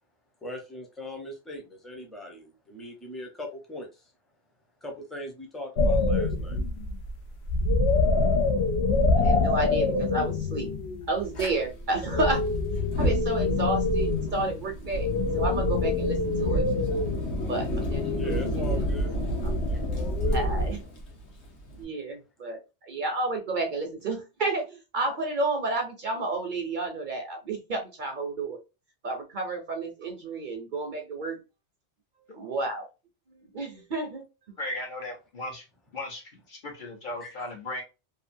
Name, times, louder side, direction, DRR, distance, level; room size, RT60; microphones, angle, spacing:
voice 1, 0.4-3.9 4.8-6.6 18.1-19.2 19.7-20.5 37.2-37.3, equal, ahead, 1 dB, 0.6 m, -39 dB
sound 1, 5.8-7.1 7.4-14.6 14.9-20.8, left 2 dB, 75° left, 0.9 m, -26 dB
voice 2, 9.2-10.7 11.1-12.4 13.0-15.1 15.3-16.6 17.4-18.3 19.4-19.5 20.3-20.8 21.7-28.6 29.0-31.4 32.3-32.9 33.5-34.5, right 2 dB, 55° right, 3 dB, 0.7 m, -31 dB
Fire, 11.4-11.5 12.8-21.8, equal, 90° left, 1.2 m, -33 dB
voice 3, 34.6-35.6 35.9-37.8, left 1 dB, 50° left, 0 dB, 1.0 m, -36 dB
2.7 x 2.4 x 2.5 m, 0.28 s
omnidirectional pair, 1.1 m